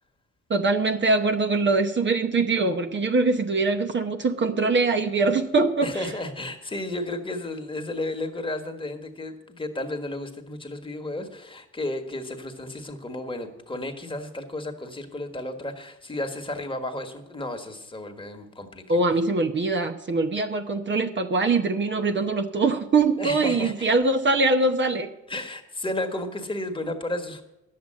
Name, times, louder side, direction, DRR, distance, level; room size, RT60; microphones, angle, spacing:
voice 1, 0.5-6.1 18.9-25.1, right 3 dB, 40° right, 6 dB, 0.9 m, -23 dB
voice 2, 5.8-18.8 23.2-23.9 25.3-27.4, left 1 dB, 15° left, 4 dB, 1.5 m, -33 dB
10.5 x 7.7 x 8.7 m, 0.93 s
cardioid pair, 90°, 30 cm